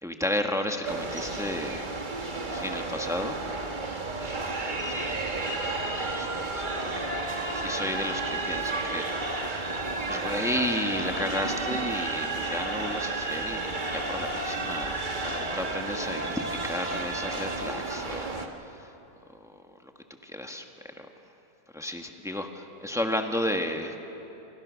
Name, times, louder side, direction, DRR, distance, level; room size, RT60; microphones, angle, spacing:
voice 1, 0.0-1.9 2.4-3.4 4.9-5.3 6.1-7.1 7.4-18.9 19.4-19.5 19.8-19.9 20.2-21.1 21.7-24.0, left 1 dB, ahead, 4 dB, 1.3 m, -33 dB
sound 1, 0.8-18.5, right 2 dB, 30° right, 1.5 m, -32 dB
26.5 x 26.0 x 6.4 m, 3.0 s
omnidirectional pair, 1.6 m